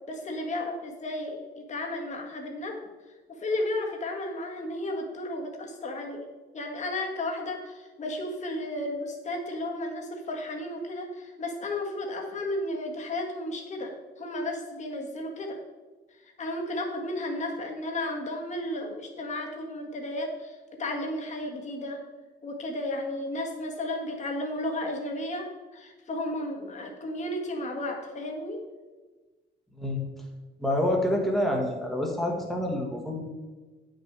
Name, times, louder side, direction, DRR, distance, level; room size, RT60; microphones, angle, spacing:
voice 1, 0.1-2.9 3.3-6.2 6.5-15.6 16.2-22.0 22.4-28.6, left 1 dB, 40° left, 1 dB, 1.7 m, -33 dB
voice 2, 30.6-33.2, left 1 dB, ahead, -1 dB, 1.7 m, -27 dB
9.9 x 6.3 x 4.7 m, 1.3 s
cardioid pair, 145°, 19 cm